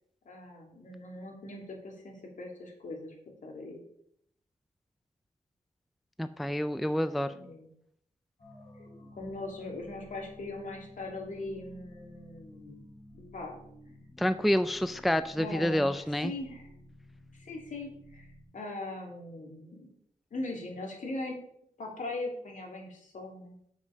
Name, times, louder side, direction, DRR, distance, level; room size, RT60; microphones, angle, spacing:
voice 1, 0.2-3.1 3.4-3.8 7.3-7.7 9.1-12.8 13.3-13.6 15.4-16.7 17.4-18.3 18.5-19.9 20.3-21.4 21.8-23.5, left 2 dB, 65° left, 0 dB, 2.6 m, -40 dB
voice 2, 6.2-7.3 14.2-16.3, equal, ahead, 11 dB, 0.3 m, -28 dB
sound 1, 8.4-18.4, left 1 dB, 50° left, 3.5 m, -53 dB
7.6 x 6.1 x 5.4 m, 0.71 s
wide cardioid pair, 130°, 14 cm